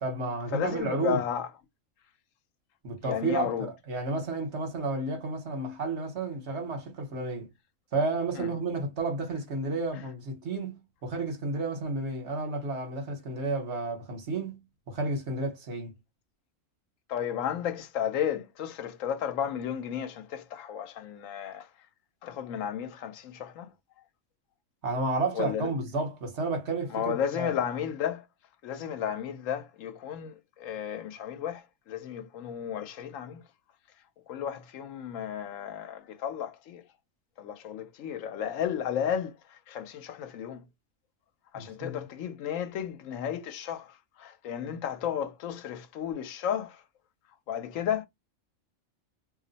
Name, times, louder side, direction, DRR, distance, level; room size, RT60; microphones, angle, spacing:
voice 1, 0.0-1.2 2.8-7.5 7.9-15.9 24.8-27.5 41.5-42.0, right 3 dB, 60° right, 1.2 m, -32 dB
voice 2, 0.5-1.5 3.0-3.7 8.3-8.5 9.9-10.0 17.1-21.7 22.2-23.7 25.3-25.7 26.9-28.2 28.6-33.4 34.3-36.8 37.4-40.6 41.5-46.8 47.5-48.1, left 9 dB, 80° left, 1.0 m, -33 dB
2.6 x 2.0 x 3.9 m
omnidirectional pair, 1.4 m